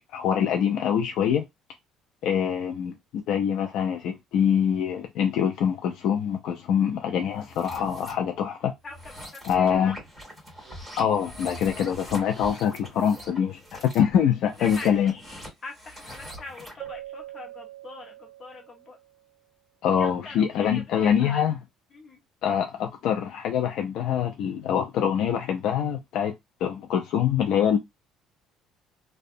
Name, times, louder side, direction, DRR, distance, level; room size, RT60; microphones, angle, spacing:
voice 1, 0.0-1.4 2.2-2.9 3.3-8.7 9.4-10.0 11.0-15.1 19.8-21.6 22.4-26.3 26.6-27.8, left 8 dB, 60° left, 0.3 m, -24 dB
sound 1, 7.4-8.1 8.8-16.9, equal, 5° right, 1.7 m, -43 dB
voice 2, 8.8-9.9 14.6-19.0 20.0-21.4 21.9-22.2, left 3 dB, 25° left, 0.7 m, -43 dB
Keyboard (musical), 16.8-19.2, right 14 dB, 75° right, 0.4 m, -43 dB
2.7 x 2.1 x 2.5 m
cardioid pair, 175°, 0 cm